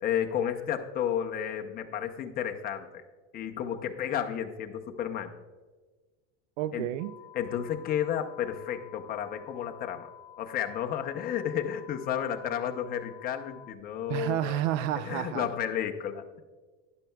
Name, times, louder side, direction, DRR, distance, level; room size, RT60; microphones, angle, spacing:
voice 1, 0.0-3.0 3.3-5.3 6.7-6.9 7.3-10.1 10.4-14.6 15.0-16.4, left 9 dB, 25° left, 5 dB, 0.7 m, -32 dB
voice 2, 6.6-7.1 14.1-15.5, right 12 dB, 85° right, 13 dB, 0.5 m, -30 dB
sound 1, 7.0-13.7, left 11 dB, 55° left, 0.7 m, -51 dB
12.0 x 10.5 x 2.3 m, 1.3 s
supercardioid pair, 150°, 36 cm